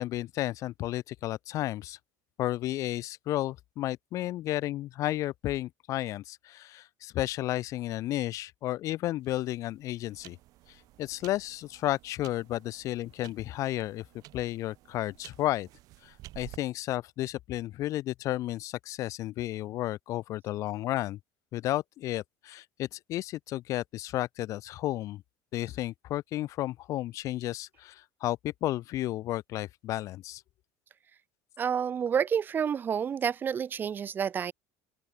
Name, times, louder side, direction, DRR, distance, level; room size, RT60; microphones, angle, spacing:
voice 1, 0.0-2.0 2.4-10.4 11.0-14.0 14.3-15.7 16.0-21.2 21.5-25.2 25.5-30.4, left 15 dB, 45° left, 0.4 m, -32 dB
sound 1, 9.2-16.6, right 17 dB, 55° right, 7.1 m, -52 dB
voice 2, 31.6-34.5, right 7 dB, 25° right, 0.6 m, -29 dB
open air
cardioid pair, 135°, 7 cm